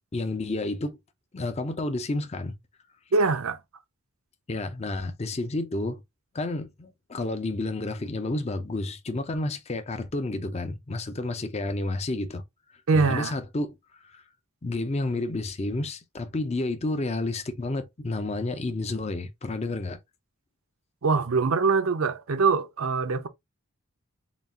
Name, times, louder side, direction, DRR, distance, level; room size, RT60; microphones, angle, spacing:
voice 1, 0.1-1.0 1.3-2.6 4.5-6.0 6.3-12.4 12.9-13.7 14.0-14.2 14.6-20.0, left 2 dB, 30° left, 0.5 m, -30 dB
voice 2, 3.1-3.6 12.9-13.3 21.0-23.3, right 4 dB, 75° right, 0.6 m, -23 dB
4.0 x 2.4 x 3.4 m
head